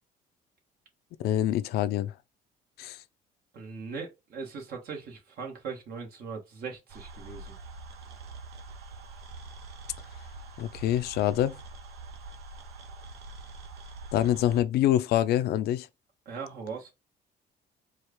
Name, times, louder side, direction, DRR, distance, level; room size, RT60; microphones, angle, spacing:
voice 1, 1.2-2.1 2.8-3.0 10.6-11.5 14.1-15.9, left 12 dB, 70° left, 0.4 m, -25 dB
voice 2, 3.5-7.6 16.2-16.9, right 5 dB, 65° right, 1.5 m, -39 dB
sound 1, 6.9-14.6, right 3 dB, 85° right, 0.8 m, -45 dB
4.6 x 2.4 x 3.0 m
cardioid pair, 110°, 17 cm